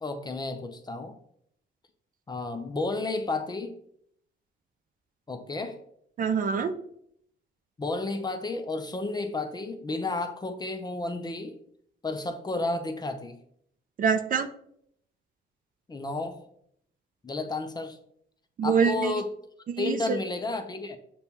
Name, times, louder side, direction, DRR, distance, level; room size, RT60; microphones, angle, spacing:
voice 1, 0.0-1.2 2.3-3.7 5.3-5.8 7.8-11.6 12.0-13.4 15.9-16.4 17.2-18.0 18.6-19.3 19.8-21.0, left 2 dB, 20° left, 6 dB, 0.4 m, -32 dB
voice 2, 6.2-6.7 14.0-14.5 18.6-19.1 19.7-20.2, right 6 dB, 45° right, 9 dB, 0.4 m, -25 dB
6.7 x 2.3 x 2.8 m, 0.71 s
cardioid pair, 90°, 20 cm